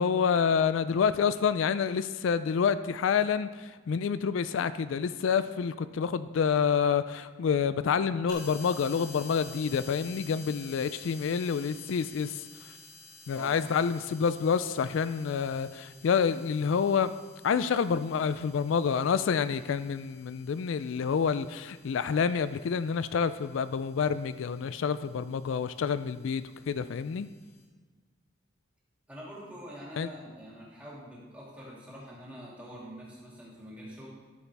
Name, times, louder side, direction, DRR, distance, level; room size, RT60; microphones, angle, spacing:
voice 1, 0.0-3.5 3.9-12.3 13.3-17.1 17.4-27.3 30.0-30.1, left 6 dB, 80° left, 13 dB, 0.4 m, -28 dB
sound 1, 8.3-27.6, left 3 dB, 20° left, 2.1 m, -52 dB
voice 2, 29.1-34.1, equal, 10° right, -7 dB, 2.5 m, -45 dB
12.5 x 7.1 x 3.4 m, 1.4 s
head